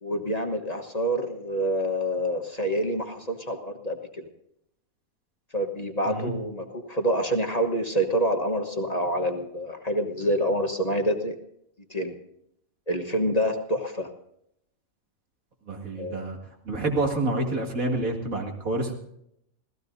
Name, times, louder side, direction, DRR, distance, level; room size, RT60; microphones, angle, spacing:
voice 1, 0.0-4.3 5.5-11.4 11.9-12.1 12.9-14.1 16.0-16.2, equal, 30° left, 4 dB, 1.3 m, -27 dB
voice 2, 15.7-16.4 16.7-18.9, right 2 dB, 75° right, 1 dB, 2.7 m, -28 dB
27.0 x 16.5 x 2.7 m, 0.76 s
omnidirectional pair, 1.5 m